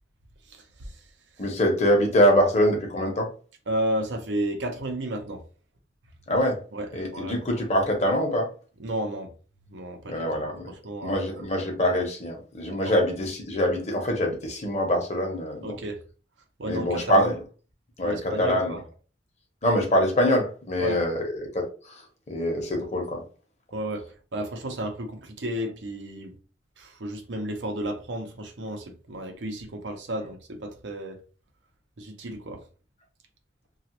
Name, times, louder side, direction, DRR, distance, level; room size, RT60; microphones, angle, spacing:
voice 1, 0.5-1.0 3.7-5.4 6.7-7.4 8.8-9.3 9.7-11.4 12.8-12.9 15.6-16.0 16.6-17.3 18.0-18.8 20.8-21.0 23.7-26.3 26.8-31.2 32.0-32.6, right 1 dB, 90° right, 0.7 m, -33 dB
voice 2, 1.4-3.3 6.3-6.6 6.9-8.5 10.1-10.7 11.0-15.7 16.7-17.4 18.0-18.8 19.6-22.0 22.3-23.2, equal, 40° left, 0.8 m, -24 dB
2.9 x 2.4 x 3.0 m
head